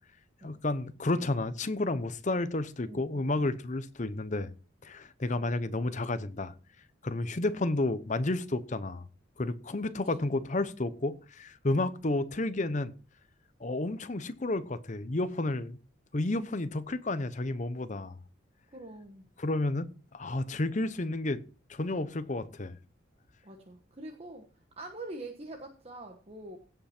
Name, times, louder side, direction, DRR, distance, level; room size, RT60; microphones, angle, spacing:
voice 1, 0.4-4.5 4.8-6.5 7.0-9.0 9.4-13.0 13.6-15.8 16.1-18.1 19.4-21.4 21.7-22.8, left 2 dB, 35° left, 0.7 m, -31 dB
voice 2, 2.9-3.5 9.8-10.4 18.7-19.2 23.4-24.4 24.8-26.6, right 2 dB, 30° right, 1.2 m, -45 dB
16.5 x 5.8 x 4.3 m
head